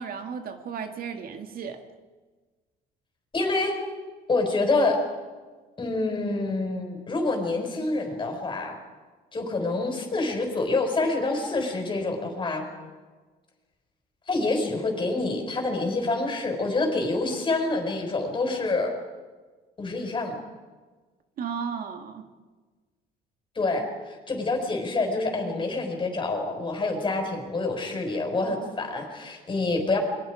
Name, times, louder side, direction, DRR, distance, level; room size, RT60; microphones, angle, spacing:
voice 1, 0.0-1.8 21.4-22.3, right 6 dB, 60° right, 6 dB, 2.0 m, -34 dB
voice 2, 3.3-3.8 4.3-5.0 5.8-8.8 9.3-12.7 14.3-18.9 19.8-20.4 23.6-30.0, left 3 dB, 30° left, 3 dB, 5.4 m, -27 dB
28.5 x 23.0 x 5.0 m, 1.3 s
cardioid pair, 110°, 17 cm